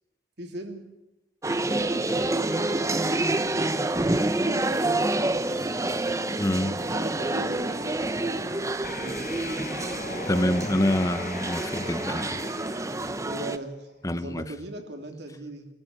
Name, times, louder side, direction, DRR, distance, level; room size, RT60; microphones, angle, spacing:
voice 1, 0.4-0.9 2.2-3.5 4.3-5.5 6.3-9.2 13.2-15.7, right 1 dB, 60° right, 4 dB, 3.1 m, -40 dB
sound 1, 1.4-13.6, right 2 dB, 15° right, 0.7 m, -28 dB
voice 2, 6.4-6.8 10.3-12.4 14.0-14.4, left 1 dB, 15° left, 12 dB, 0.9 m, -26 dB
sound 2, 8.8-13.7, left 4 dB, 45° left, 0.9 m, -40 dB
23.0 x 13.0 x 9.9 m, 0.98 s
head